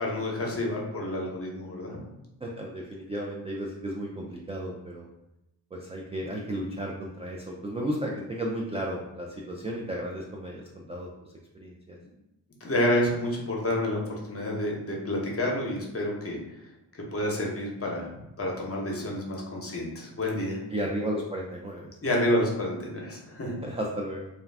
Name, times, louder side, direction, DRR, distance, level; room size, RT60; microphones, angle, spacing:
voice 1, 0.0-2.0 12.0-12.1 12.6-16.4 17.1-20.6 22.0-23.6, left 1 dB, 30° left, -1 dB, 0.9 m, -29 dB
voice 2, 2.4-5.1 5.7-11.1 11.5-12.0 20.7-22.2 23.6-24.3, right 1 dB, 15° right, -2 dB, 0.3 m, -34 dB
2.4 x 2.2 x 3.4 m, 0.90 s
cardioid pair, 60°, 45 cm